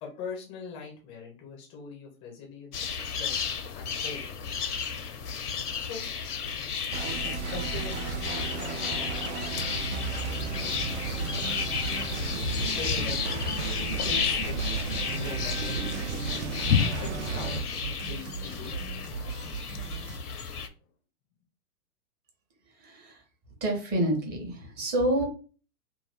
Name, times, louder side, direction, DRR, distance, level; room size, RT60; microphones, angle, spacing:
voice 1, 0.0-3.4 3.7-4.2 5.8-6.0 7.5-9.5 9.9-11.3 12.8-13.2 14.0-15.8 16.1-16.5 17.0-18.7, left 5 dB, 15° left, 0 dB, 0.4 m, -42 dB
sound 1, 2.7-20.7, left 6 dB, 85° left, 0.6 m, -32 dB
sound 2, 6.9-17.6, right 5 dB, 50° right, 0.5 m, -35 dB
sound 3, 10.5-20.2, right 5 dB, 80° right, 0.9 m, -38 dB
voice 2, 22.8-23.2 23.6-25.3, right 1 dB, 20° right, 1 dB, 0.9 m, -28 dB
2.5 x 2.3 x 3.3 m, 0.37 s
figure-of-eight pair, 115°, 45 cm